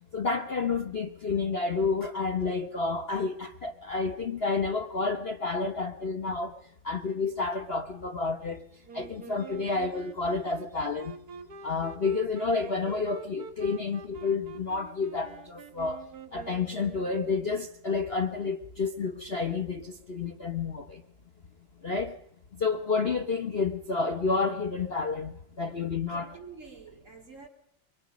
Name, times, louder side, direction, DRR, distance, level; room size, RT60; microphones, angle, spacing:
voice 1, 0.1-6.6 6.8-8.6 8.9-11.1 11.6-16.0 16.3-21.0 21.8-22.1 22.6-26.3, left 4 dB, 40° left, 1.1 m, -30 dB
Wind instrument woodwind instrument, 8.9-17.6, right 5 dB, 55° right, 2.1 m, -46 dB
voice 2, 26.1-27.5, right 5 dB, 40° right, 4.2 m, -47 dB
26.0 x 23.0 x 5.3 m
omnidirectional pair, 2.1 m